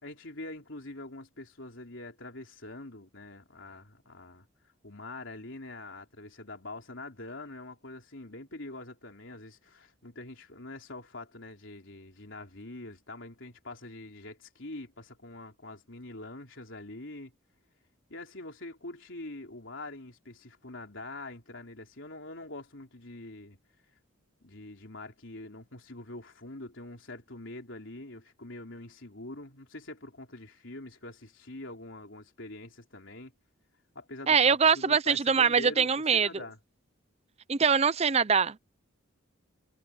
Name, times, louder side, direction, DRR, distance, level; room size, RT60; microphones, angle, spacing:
voice 1, 0.0-4.5 4.8-17.3 18.1-23.6 24.4-33.3 33.9-36.6, left 2 dB, 60° left, 4.1 m, -44 dB
voice 2, 34.3-36.3 37.5-38.6, right 6 dB, 30° right, 0.5 m, -23 dB
head